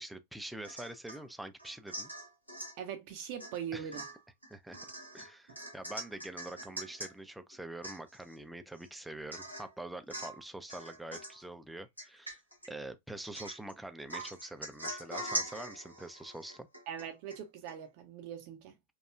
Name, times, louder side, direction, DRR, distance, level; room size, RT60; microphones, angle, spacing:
voice 1, 0.0-2.1 3.7-3.9 4.5-4.8 5.1-12.4 12.7-16.7, right 1 dB, 5° right, 0.5 m, -45 dB
Domestic sounds home sounds / Chink clink / Drip, 0.6-1.2 1.6-2.8 3.4-3.6 3.9-7.1 7.5-7.6 7.8-8.3 8.8-8.9 9.3-9.7 10.1-10.4 10.7-11.4 12.0-12.7 13.2-13.7 14.1-17.4 17.7-17.8, right 1 dB, 90° right, 1.0 m, -42 dB
voice 2, 2.8-4.0 16.9-18.7, right 8 dB, 45° right, 0.6 m, -41 dB
4.7 x 2.3 x 2.3 m
figure-of-eight pair, 90°, 0 cm